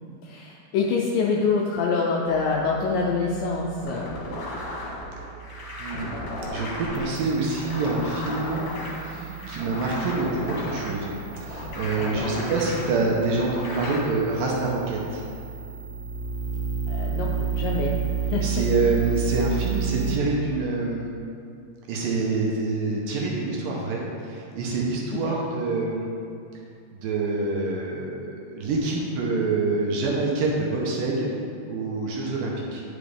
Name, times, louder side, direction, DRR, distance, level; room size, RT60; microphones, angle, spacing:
voice 1, 0.2-4.1 12.0-12.3 16.9-18.0 18.3-18.6 25.2-25.3, left 4 dB, 85° left, -2 dB, 2.0 m, -26 dB
sound 1, 2.3-20.2, right 7 dB, 90° right, 2.7 m, -33 dB
sound 2, 3.8-14.0, left 2 dB, 60° left, 2.1 m, -35 dB
voice 2, 5.8-6.2 6.5-8.6 9.0-11.2 11.4-15.2 18.4-21.0 21.9-26.1 26.9-31.3 31.7-32.8, right 3 dB, 75° right, -2 dB, 2.3 m, -26 dB
9.9 x 5.4 x 3.4 m, 2.4 s
omnidirectional pair, 4.4 m